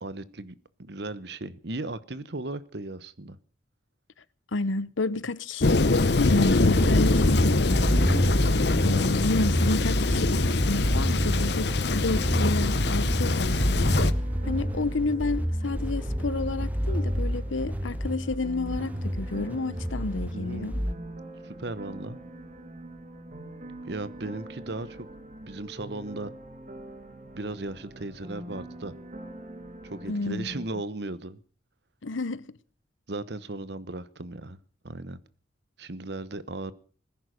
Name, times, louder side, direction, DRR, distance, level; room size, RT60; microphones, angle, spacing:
voice 1, 0.0-3.4 20.3-20.8 21.4-22.2 23.8-25.1 25.4-26.3 27.3-28.9 29.8-31.4 33.1-34.6 34.8-35.2 35.8-36.7, right 2 dB, 60° right, 1.0 m, -36 dB
voice 2, 4.5-8.1 8.8-13.9 14.5-20.8 30.1-30.5 32.0-32.6, left 3 dB, 90° left, 0.9 m, -30 dB
Thunder, 5.6-14.1, left 3 dB, 60° left, 0.9 m, -24 dB
sound 1, 6.7-20.9, equal, 10° right, 0.8 m, -28 dB
sound 2, 11.1-30.7, right 1 dB, 40° right, 1.8 m, -43 dB
20.0 x 10.5 x 6.5 m
head